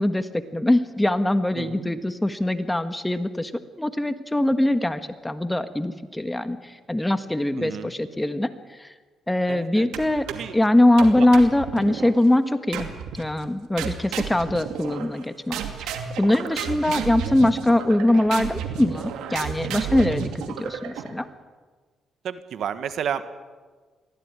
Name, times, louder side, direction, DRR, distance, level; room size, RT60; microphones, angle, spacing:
voice 1, 0.0-8.9 9.3-10.2 10.5-12.9 13.2-15.9 16.2-20.3 20.6-21.3, left 1 dB, 10° left, 10 dB, 1.5 m, -22 dB
voice 2, 1.5-1.9 7.6-7.9 9.5-10.0 10.3-10.5 11.1-11.3 16.6-16.8 22.2-23.3, right 8 dB, 65° right, 11 dB, 1.6 m, -32 dB
sound 1, 9.9-10.6 11.0-12.1 12.7-13.3 13.8-15.2 15.5-21.2, right 7 dB, 90° right, 2.5 m, -32 dB
23.5 x 16.0 x 9.8 m, 1.4 s
cardioid pair, 90°, 0 cm